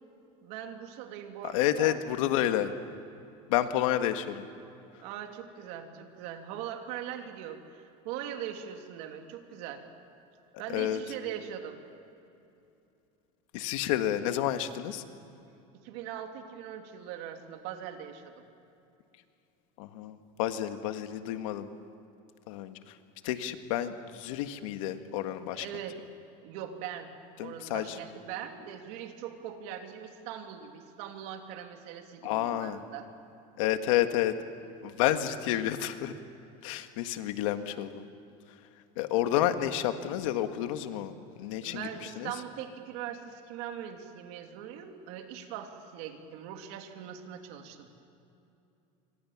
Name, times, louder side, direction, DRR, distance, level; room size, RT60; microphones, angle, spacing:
voice 1, 0.4-2.0 2.6-2.7 5.0-9.8 10.6-11.8 15.7-18.4 25.5-26.0 26.4-27.1 27.4-33.1 41.6-47.9, right 9 dB, 70° right, 5 dB, 2.9 m, -41 dB
voice 2, 1.4-2.7 3.5-4.5 10.7-11.0 13.5-15.0 19.8-21.7 22.5-23.0 23.2-25.7 27.4-27.9 32.2-32.8 33.6-34.3 34.8-36.2 36.6-38.0 39.0-41.9 42.2-42.3, left 12 dB, 90° left, 8 dB, 1.7 m, -30 dB
27.5 x 25.5 x 7.4 m, 2.8 s
cardioid pair, 150°, 17 cm